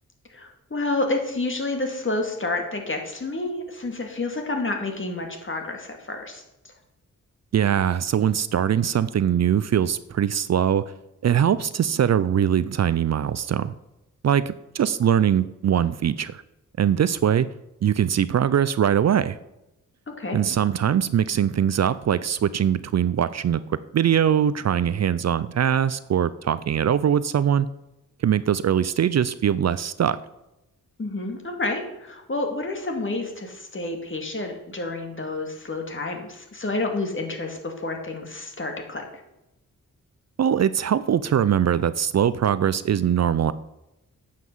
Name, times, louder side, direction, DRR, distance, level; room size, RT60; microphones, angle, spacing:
voice 1, 0.3-6.7 20.1-20.4 31.0-39.0, left 2 dB, 40° left, 3 dB, 2.2 m, -29 dB
voice 2, 7.5-10.8 11.2-13.7 14.2-16.4 16.8-17.5 17.8-19.4 20.3-23.6 23.9-27.7 28.2-30.2 40.4-43.5, right 9 dB, 55° right, 16 dB, 0.5 m, -22 dB
9.3 x 5.8 x 7.2 m, 0.91 s
cardioid pair, 70°, 32 cm